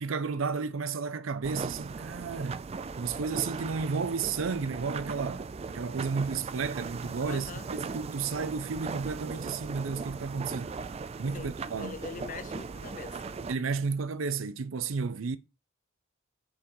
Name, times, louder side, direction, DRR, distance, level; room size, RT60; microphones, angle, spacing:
voice 1, 0.0-2.6 3.0-10.7 11.2-11.9 13.5-15.4, right 5 dB, 80° right, 0.6 m, -32 dB
sound 1, 1.4-13.5, right 4 dB, 30° right, 0.4 m, -38 dB
voice 2, 7.2-7.7 11.3-13.3, left 5 dB, 40° left, 0.5 m, -43 dB
6.9 x 3.8 x 5.4 m
head